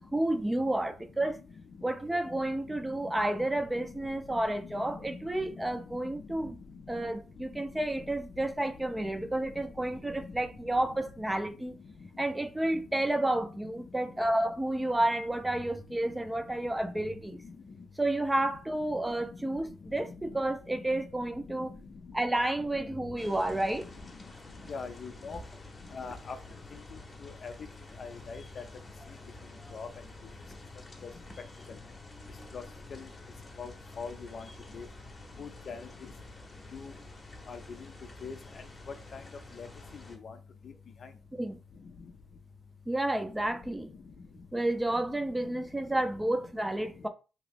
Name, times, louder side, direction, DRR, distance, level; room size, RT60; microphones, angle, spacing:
voice 1, 0.1-1.4 1.8-6.6 6.9-11.7 12.2-17.4 18.0-21.7 22.1-23.9 29.6-29.8 41.3-41.6 42.9-43.9 44.5-47.1, right 1 dB, 10° right, 0.5 m, -31 dB
sound 1, 23.2-40.2, left 2 dB, 30° left, 0.9 m, -49 dB
voice 2, 24.7-25.4 25.9-26.4 27.4-27.5 28.0-28.6 29.7-29.9 32.5-32.6 32.9-33.0 33.6-33.7 34.0-34.4 34.7-34.9 35.4-35.8 36.7-36.9 37.5-37.6 38.2-38.4 39.1-39.2 39.6-39.7 40.2-40.3, left 5 dB, 55° left, 0.4 m, -40 dB
2.8 x 2.5 x 3.3 m
cardioid pair, 80°, 0 cm